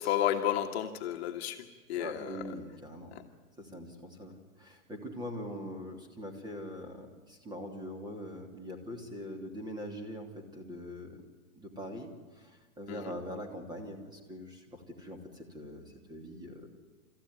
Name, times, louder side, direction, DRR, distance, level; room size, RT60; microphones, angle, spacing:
voice 1, 0.0-2.5 3.1-3.2 12.9-13.2, left 11 dB, 45° left, 4 dB, 1.7 m, -32 dB
voice 2, 1.9-3.2 3.6-11.2 11.5-16.7, equal, 10° right, 4 dB, 3.0 m, -43 dB
30.0 x 14.5 x 9.8 m, 1.3 s
hypercardioid pair, 145°, 43 cm